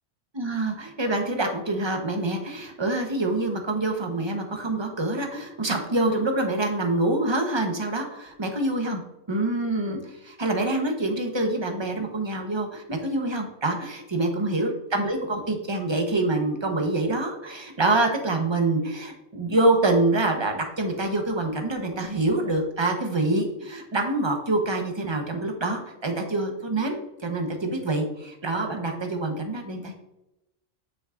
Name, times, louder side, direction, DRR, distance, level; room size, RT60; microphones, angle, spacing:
voice 1, 0.3-9.0 9.3-29.9, right 2 dB, 25° right, 4 dB, 0.9 m, -26 dB
7.9 x 6.2 x 2.5 m, 0.89 s
omnidirectional pair, 1.2 m